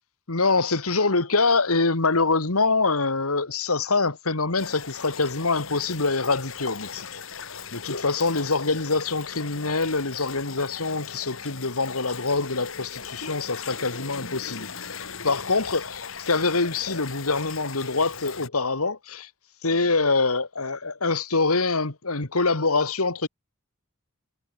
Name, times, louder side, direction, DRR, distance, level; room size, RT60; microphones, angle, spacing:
voice 1, 0.3-7.2 7.7-19.3 19.6-23.3, left 3 dB, 85° left, 2.4 m, -25 dB
sound 1, 4.6-18.5, left 5 dB, 65° left, 5.0 m, -38 dB
head